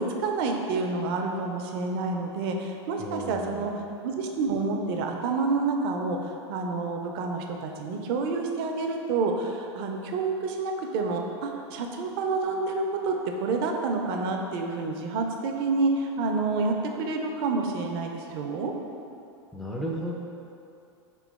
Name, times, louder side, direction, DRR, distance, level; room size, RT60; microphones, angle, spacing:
voice 1, 0.0-3.7 4.0-6.2 6.5-18.7, right 3 dB, 55° right, 3 dB, 0.5 m, -28 dB
voice 2, 3.0-3.7 19.5-20.1, equal, ahead, -3 dB, 0.4 m, -34 dB
3.6 x 3.0 x 3.5 m, 2.7 s
hypercardioid pair, 105°, 15 cm